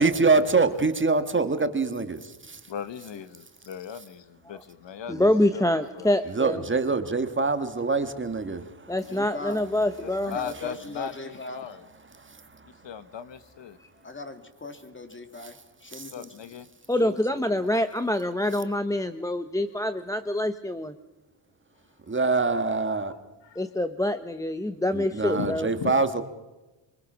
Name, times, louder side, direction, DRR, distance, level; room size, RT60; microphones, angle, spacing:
voice 1, 0.0-2.6 6.3-8.9 12.3-12.4 15.9-16.1 22.1-23.1 24.9-26.2, right 3 dB, 25° right, 1.6 m, -25 dB
voice 2, 2.7-6.1 10.0-11.8 12.6-13.8 16.1-16.7 23.1-23.2 23.4-23.6 25.3-26.1, left 8 dB, 60° left, 1.2 m, -38 dB
voice 3, 5.1-6.6 8.9-10.3 16.9-20.9 23.6-25.7, left 1 dB, 5° left, 0.7 m, -26 dB
voice 4, 9.0-9.7 10.2-11.8 14.0-16.3 16.9-17.7 19.4-19.5, left 2 dB, 25° left, 2.5 m, -40 dB
25.0 x 24.0 x 6.2 m
wide cardioid pair, 140°, 49 cm